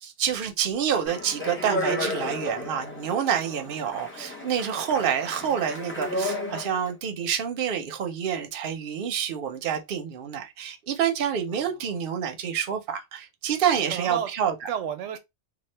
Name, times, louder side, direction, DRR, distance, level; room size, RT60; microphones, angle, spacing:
voice 1, 0.0-14.5, right 8 dB, 55° right, 0.8 m, -28 dB
Speech, 1.1-6.9, left 1 dB, 10° left, 0.7 m, -33 dB
voice 2, 3.4-4.1 4.9-5.3 11.5-11.9 13.7-14.3 14.7-15.2, right 10 dB, 85° right, 0.9 m, -34 dB
2.7 x 2.4 x 3.2 m
omnidirectional pair, 1.2 m